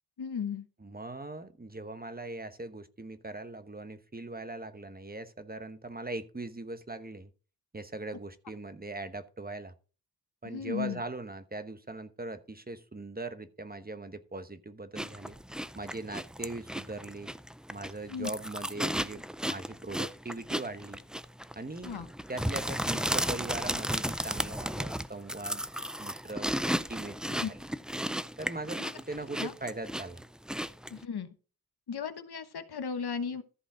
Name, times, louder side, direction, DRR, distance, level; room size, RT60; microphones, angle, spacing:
voice 1, 0.2-0.7 10.4-11.0 18.1-18.3 21.8-22.1 27.4-27.5 28.8-28.9 29.4-29.5 30.9-31.3 31.9-33.4, left 6 dB, 85° left, 1.1 m, -35 dB
voice 2, 0.8-7.3 7.7-9.7 10.4-15.4 15.7-17.3 17.7-21.0 21.6-22.0 22.3-25.6 26.0-27.6 28.4-30.2, right 2 dB, 25° right, 1.1 m, -40 dB
sound 1, 15.0-31.0, equal, ahead, 0.4 m, -34 dB
14.0 x 5.2 x 4.7 m
wide cardioid pair, 80°, 38 cm